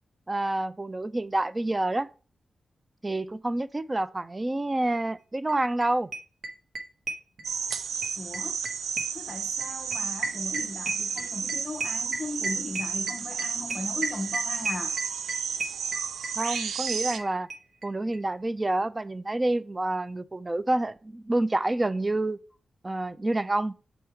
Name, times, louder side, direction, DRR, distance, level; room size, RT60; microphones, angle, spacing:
voice 1, 0.3-2.1 3.0-6.1 16.4-17.5 17.8-22.4 22.8-23.7, right 2 dB, 25° right, 0.4 m, -28 dB
sound 1, 5.5-5.6 5.8-5.9 6.1-17.2 17.5-17.6 17.8-17.9 18.1-18.2, right 3 dB, 70° right, 1.1 m, -33 dB
sound 2, 7.4-17.2, right 6 dB, 90° right, 0.4 m, -32 dB
voice 2, 8.2-8.6 9.1-14.9, left 2 dB, 35° left, 0.7 m, -37 dB
7.3 x 3.5 x 4.4 m
cardioid pair, 60°, 0 cm